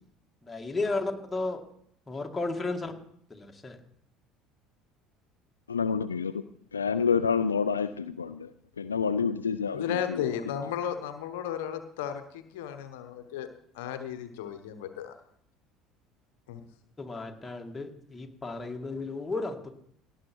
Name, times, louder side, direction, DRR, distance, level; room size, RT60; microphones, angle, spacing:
voice 1, 0.4-1.6 2.1-2.9 3.3-3.8 17.0-19.7, left 3 dB, 15° left, 2.1 m, -33 dB
voice 2, 5.7-6.3 6.7-8.5 8.8-10.3, left 6 dB, 90° left, 0.3 m, -28 dB
voice 3, 9.7-13.5 13.7-15.1 16.5-16.6, left 9 dB, 70° left, 1.0 m, -34 dB
17.5 x 7.1 x 4.6 m
hypercardioid pair, 65°, 0 cm